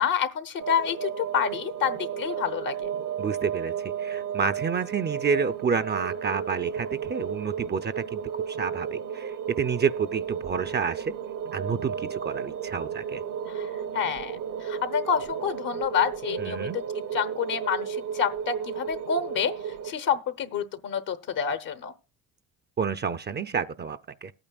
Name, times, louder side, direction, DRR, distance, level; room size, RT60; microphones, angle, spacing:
voice 1, 0.0-2.9 13.5-13.7 13.9-16.8 17.1-19.5 19.8-21.9, left 7 dB, 70° left, 1.0 m, -28 dB
sound 1, 0.6-19.9, right 8 dB, 60° right, 0.8 m, -33 dB
voice 2, 3.2-11.2 11.5-13.2 16.4-16.8 22.8-24.3, right 6 dB, 30° right, 0.5 m, -29 dB
21.0 x 8.9 x 2.3 m
supercardioid pair, 70°, 34 cm